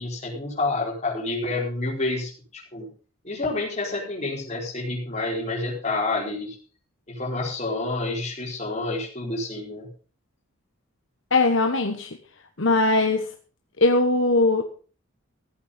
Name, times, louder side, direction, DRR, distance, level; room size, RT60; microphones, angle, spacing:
voice 1, 0.0-2.9 3.2-6.6 7.1-9.9, left 2 dB, 30° left, -2 dB, 4.7 m, -28 dB
voice 2, 11.3-12.1 12.6-13.3 13.8-14.6, left 2 dB, 60° left, 4 dB, 1.2 m, -20 dB
15.5 x 8.6 x 5.2 m, 0.39 s
head